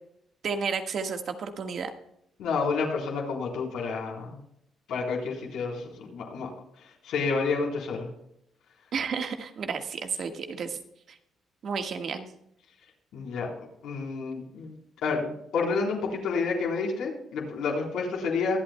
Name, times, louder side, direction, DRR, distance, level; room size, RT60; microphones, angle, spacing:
voice 1, 0.4-1.9 8.9-10.8 11.1-11.2 11.6-12.3, right 5 dB, 60° right, 6 dB, 1.4 m, -32 dB
voice 2, 2.4-4.4 4.9-6.5 7.0-8.1 13.1-13.5 13.8-14.8 15.0-18.6, left 4 dB, 85° left, -1 dB, 3.7 m, -29 dB
23.5 x 8.7 x 2.2 m, 0.77 s
cardioid pair, 90°, 0 cm